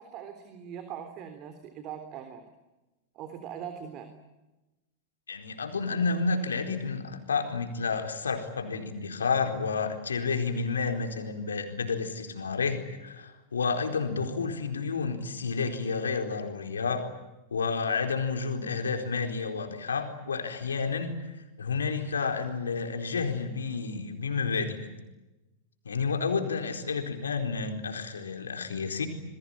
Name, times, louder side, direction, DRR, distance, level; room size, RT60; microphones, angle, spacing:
voice 1, 0.0-2.5 3.2-4.1, right 8 dB, 40° right, 8 dB, 3.6 m, -41 dB
voice 2, 5.3-17.0 17.5-21.2 21.6-24.8 25.8-29.1, left 5 dB, 80° left, 5 dB, 4.3 m, -30 dB
28.5 x 21.5 x 8.9 m, 1.0 s
hypercardioid pair, 95°, 0 cm